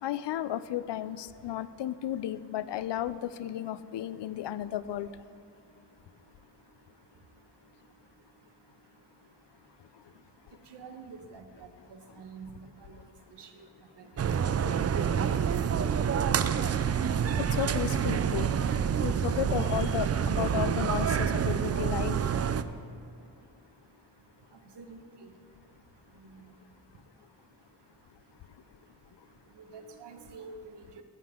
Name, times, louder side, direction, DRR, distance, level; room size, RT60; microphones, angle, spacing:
voice 1, 0.0-5.2 17.4-18.5 19.0-22.2, left 12 dB, 90° left, 0.5 m, -33 dB
voice 2, 10.7-11.7 12.2-12.5 13.4-13.5 14.2-14.3 14.6-14.7 24.8-25.0 29.7-31.0, right 5 dB, 85° right, 1.1 m, -46 dB
sound 1, 14.2-22.6, right 7 dB, 40° right, 0.4 m, -27 dB
14.5 x 9.4 x 3.6 m
wide cardioid pair, 115°, 40 cm